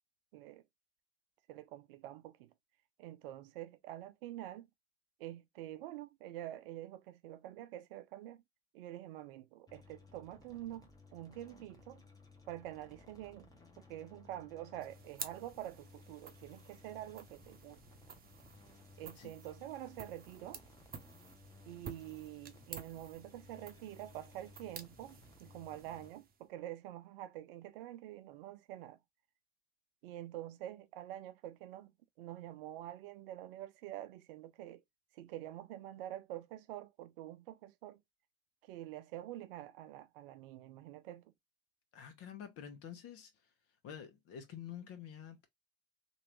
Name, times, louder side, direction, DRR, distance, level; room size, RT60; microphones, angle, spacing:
voice 1, 0.3-0.6 1.5-2.5 3.0-4.7 5.2-8.4 8.7-12.0 12.5-13.5 13.8-17.8 19.0-20.6 21.7-29.0 30.0-34.8 35.1-38.0 38.6-41.3, right 13 dB, 65° right, 0.6 m, -47 dB
sound 1, 9.7-26.1, left 3 dB, 10° left, 1.1 m, -60 dB
sound 2, 14.8-26.5, right 6 dB, 30° right, 0.8 m, -52 dB
voice 2, 41.9-43.3 43.8-45.5, left 8 dB, 50° left, 1.3 m, -48 dB
3.0 x 2.7 x 3.0 m
hypercardioid pair, 70°, 30 cm